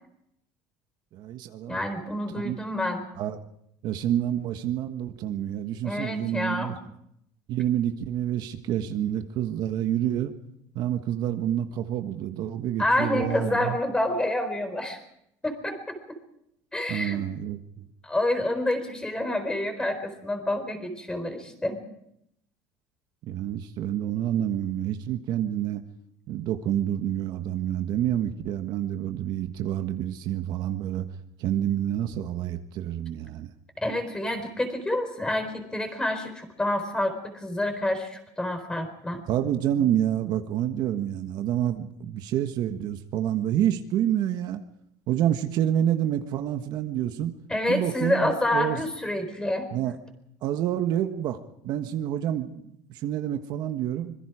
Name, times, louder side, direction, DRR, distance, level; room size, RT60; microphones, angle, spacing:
voice 1, 1.1-1.8 2.4-2.6 3.2-3.4 3.8-6.7 7.5-10.3 10.7-13.8 16.9-17.9 23.3-25.8 26.3-31.1 31.4-33.5 39.3-44.6 45.1-47.3 47.7-48.8 49.7-50.0 50.4-51.4 51.6-54.1, right 11 dB, 50° right, 6 dB, 1.5 m, -28 dB
voice 2, 1.7-3.1 5.8-6.7 12.8-15.0 15.4-16.2 16.7-17.3 18.0-21.8 33.8-39.2 47.5-49.7, left 1 dB, 10° left, 7 dB, 4.3 m, -28 dB
25.5 x 22.0 x 5.0 m, 0.76 s
cardioid pair, 135°, 9 cm